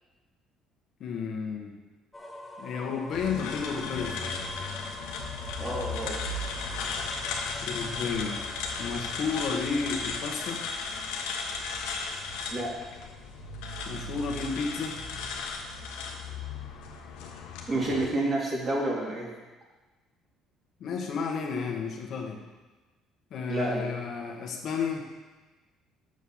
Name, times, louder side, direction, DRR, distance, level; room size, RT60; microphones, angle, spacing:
voice 1, 1.0-1.8 2.6-4.3 7.6-8.4 8.8-10.6 13.8-15.0 20.8-22.4 23.3-25.0, left 5 dB, 60° left, 1 dB, 1.5 m, -32 dB
sound 1, 2.1-13.9, left 1 dB, 10° left, 1.6 m, -47 dB
sound 2, 3.1-18.1, left 4 dB, 85° left, 1.2 m, -35 dB
voice 2, 5.6-6.2 12.5-12.8 17.7-19.3 23.5-23.9, right 1 dB, 35° right, -3 dB, 3.1 m, -29 dB
6.5 x 6.4 x 7.2 m, 1.2 s
supercardioid pair, 85°, 0 cm